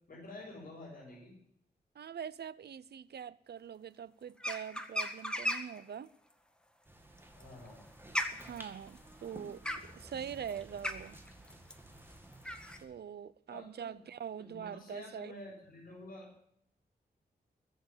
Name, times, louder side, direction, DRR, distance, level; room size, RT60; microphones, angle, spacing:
voice 1, 0.1-1.4 7.4-7.8 13.5-14.0 14.4-16.3, left 1 dB, 60° left, 7.4 m, -49 dB
voice 2, 1.9-6.1 8.3-11.2 12.8-15.3, right 8 dB, 80° right, 0.7 m, -44 dB
sound 1, 4.4-5.8 7.2-12.8, left 1 dB, 5° left, 1.7 m, -37 dB
sound 2, 6.8-12.8, right 1 dB, 15° right, 2.2 m, -54 dB
22.0 x 7.6 x 7.3 m
wide cardioid pair, 115°, 17 cm